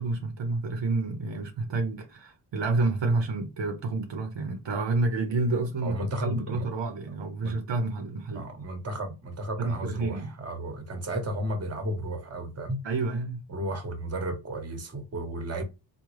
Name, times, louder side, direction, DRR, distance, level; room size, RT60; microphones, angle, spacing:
voice 1, 0.0-8.4 9.6-10.3 12.8-13.4, right 3 dB, 70° right, 0.7 m, -29 dB
voice 2, 5.8-6.7 7.1-7.6 8.3-12.8 13.5-15.6, right 1 dB, 35° right, 0.9 m, -34 dB
3.6 x 2.2 x 3.0 m
wide cardioid pair, 110°, 45 cm